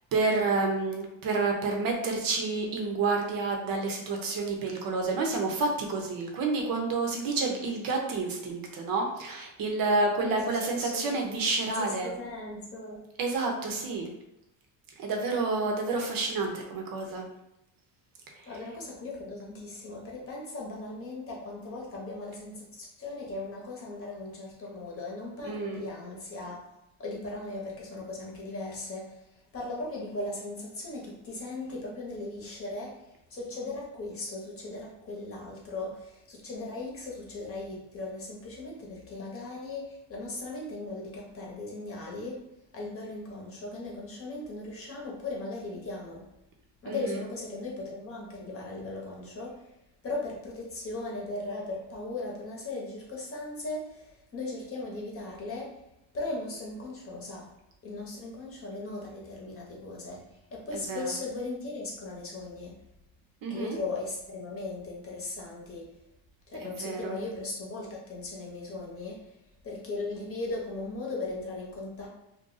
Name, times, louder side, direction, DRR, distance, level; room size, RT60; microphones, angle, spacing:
voice 1, 0.1-12.1 13.2-14.1 15.0-17.3 25.4-25.8 46.9-47.2 60.7-61.1 63.4-63.8 66.6-67.1, right 3 dB, 50° right, 2 dB, 0.8 m, -29 dB
voice 2, 10.2-11.4 11.7-13.0 18.5-26.7 27.0-42.4 42.7-46.3 46.8-49.7 50.0-55.8 56.1-57.5 57.8-62.8 63.5-65.9 66.5-69.4 69.6-72.1, left 2 dB, 30° left, -2 dB, 0.9 m, -38 dB
2.5 x 2.3 x 3.9 m, 0.87 s
cardioid pair, 135°, 44 cm